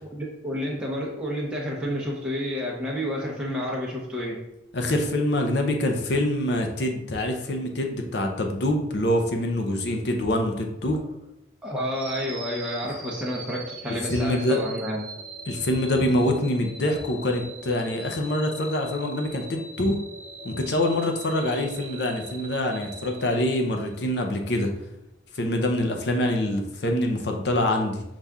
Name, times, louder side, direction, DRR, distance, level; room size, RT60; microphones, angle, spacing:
voice 1, 0.0-4.4 11.6-15.0, equal, 5° right, -4 dB, 0.7 m, -30 dB
voice 2, 4.7-11.0 14.1-14.6 15.5-20.0 20.4-24.7 25.3-28.0, left 1 dB, 60° left, 3 dB, 0.6 m, -25 dB
sound 1, 11.9-24.1, right 3 dB, 50° right, 1.0 m, -42 dB
5.6 x 2.5 x 3.5 m, 0.89 s
head